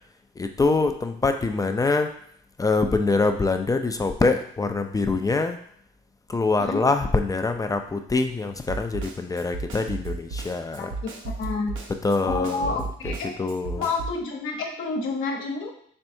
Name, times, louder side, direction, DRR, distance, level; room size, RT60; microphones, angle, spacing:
voice 1, 0.4-2.1 2.6-5.6 6.3-10.9 12.0-12.7 13.0-13.8, left 3 dB, 20° left, 6 dB, 0.4 m, -24 dB
Snare drum, 8.7-14.2, right 3 dB, 85° right, 0.8 m, -34 dB
voice 2, 11.4-11.7 12.2-13.3 13.8-15.7, left 4 dB, 80° left, 0 dB, 0.9 m, -29 dB
4.4 x 3.3 x 2.7 m, 0.65 s
cardioid pair, 90°, 20 cm